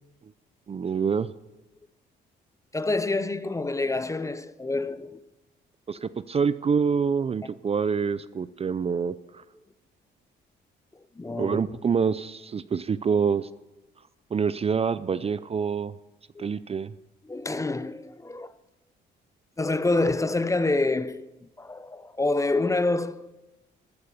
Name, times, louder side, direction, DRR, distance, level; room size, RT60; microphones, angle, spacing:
voice 1, 0.7-1.3 5.9-9.1 11.4-13.5 14.3-15.9 16.4-16.9, right 6 dB, 30° right, 0.5 m, -26 dB
voice 2, 2.7-5.2 11.2-11.6 16.4-16.5 17.2-18.5 19.6-21.3 21.6-23.3, left 2 dB, 15° left, 0.6 m, -27 dB
14.0 x 9.4 x 5.6 m
cardioid pair, 90°, 20 cm